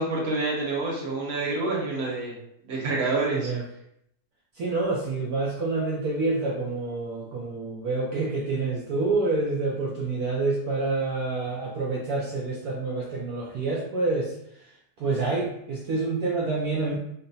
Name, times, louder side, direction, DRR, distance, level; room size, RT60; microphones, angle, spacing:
voice 1, 0.0-2.3 2.7-3.5, right 3 dB, 45° right, -3 dB, 1.2 m, -27 dB
voice 2, 4.6-14.3 15.0-17.0, right 3 dB, 70° right, -4 dB, 1.1 m, -27 dB
3.9 x 2.1 x 4.0 m, 0.75 s
omnidirectional pair, 1.8 m